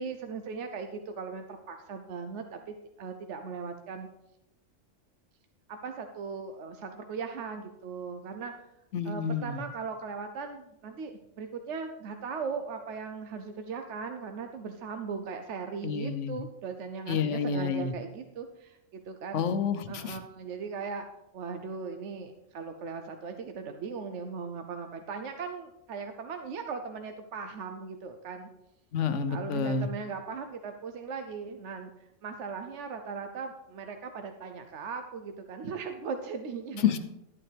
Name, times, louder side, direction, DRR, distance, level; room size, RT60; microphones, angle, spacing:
voice 1, 0.0-4.1 5.7-8.5 9.0-19.4 19.9-21.0 21.3-28.5 29.3-31.9 32.2-36.8, right 5 dB, 70° right, 6 dB, 1.0 m, -38 dB
voice 2, 8.9-9.6 15.8-16.4 17.1-17.9 19.3-20.2 28.9-29.9 36.8-37.0, left 6 dB, 70° left, 10 dB, 1.1 m, -29 dB
12.0 x 8.9 x 3.4 m, 0.86 s
omnidirectional pair, 1.3 m